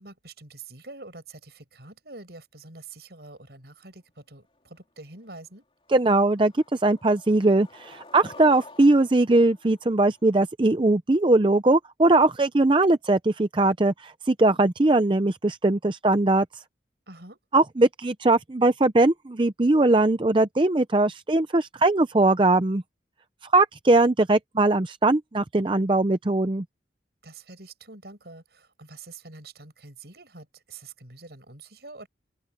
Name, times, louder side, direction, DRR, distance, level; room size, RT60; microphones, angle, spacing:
voice 1, 0.0-5.7 17.1-17.4 27.2-32.1, right 3 dB, 65° right, 6.9 m, -45 dB
Skateboard, 4.8-4.9 5.2-5.6 5.9-10.5, left 2 dB, 30° left, 3.9 m, -50 dB
voice 2, 5.9-16.5 17.5-22.8 23.5-26.6, right 2 dB, 30° right, 0.6 m, -20 dB
open air
head